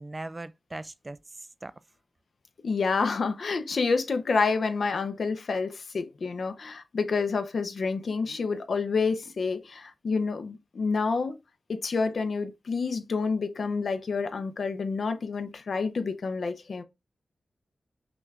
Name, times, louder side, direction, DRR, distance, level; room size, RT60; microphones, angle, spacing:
voice 1, 0.0-1.7, right 2 dB, 30° right, 0.4 m, -40 dB
voice 2, 2.6-11.4 11.7-16.8, left 4 dB, 70° left, 0.7 m, -28 dB
6.0 x 2.4 x 3.2 m
wide cardioid pair, 75°, 0 cm